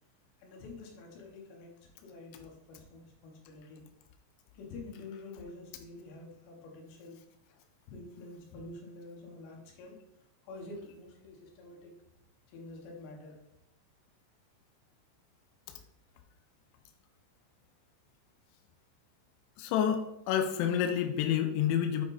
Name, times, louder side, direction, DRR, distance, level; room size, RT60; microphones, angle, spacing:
voice 1, 0.4-1.7 2.0-3.8 4.5-7.2 7.9-10.0 10.4-11.9 12.5-13.4, left 2 dB, 65° left, 0 dB, 3.2 m, -48 dB
voice 2, 19.6-22.0, left 9 dB, 90° left, 5 dB, 2.6 m, -29 dB
8.2 x 4.9 x 4.1 m, 0.81 s
omnidirectional pair, 6.0 m